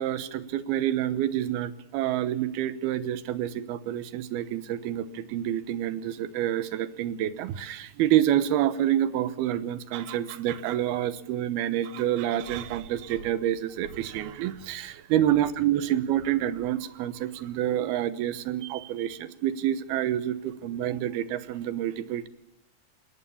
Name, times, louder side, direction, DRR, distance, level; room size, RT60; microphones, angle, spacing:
voice 1, 0.0-22.3, right 11 dB, 90° right, 15 dB, 3.0 m, -28 dB
22.0 x 18.5 x 7.1 m, 0.82 s
omnidirectional pair, 4.3 m